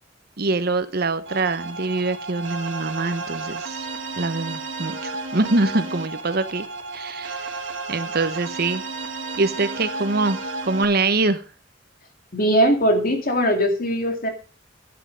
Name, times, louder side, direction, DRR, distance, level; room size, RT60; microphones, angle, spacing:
voice 1, 0.4-3.8 4.2-6.7 6.9-7.6 7.9-8.8 9.4-10.4 10.7-11.4, right 3 dB, 55° right, 11 dB, 1.1 m, -24 dB
sound 1, 1.3-10.9, right 3 dB, 75° right, 2.1 m, -32 dB
voice 2, 12.3-14.3, equal, 50° left, 5 dB, 2.5 m, -20 dB
11.5 x 10.0 x 5.2 m, 0.35 s
head